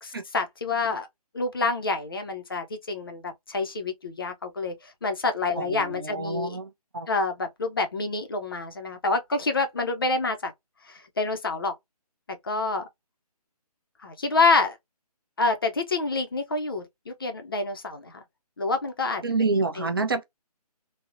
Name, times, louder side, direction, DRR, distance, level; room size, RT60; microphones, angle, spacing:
voice 1, 0.0-1.1 1.3-6.6 7.1-10.5 10.9-11.7 12.4-12.9 14.0-14.8 15.4-18.2 18.6-19.2 19.8-19.9, left 3 dB, 35° left, 0.5 m, -27 dB
voice 2, 5.6-7.1 19.2-20.2, right 3 dB, 35° right, 0.4 m, -28 dB
3.5 x 2.0 x 2.4 m
figure-of-eight pair, 150°, 20 cm